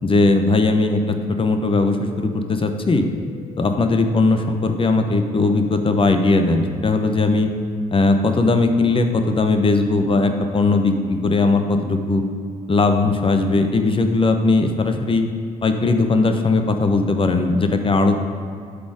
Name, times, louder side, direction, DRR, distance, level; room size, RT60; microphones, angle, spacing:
voice 1, 0.0-3.1 3.6-7.5 7.9-12.2 12.7-15.2 15.6-18.2, left 3 dB, 30° left, 6 dB, 0.9 m, -18 dB
sound 1, 2.1-6.7 10.0-13.3, right 3 dB, 55° right, 1.1 m, -42 dB
11.0 x 4.2 x 4.9 m, 2.3 s
hypercardioid pair, 50°, 19 cm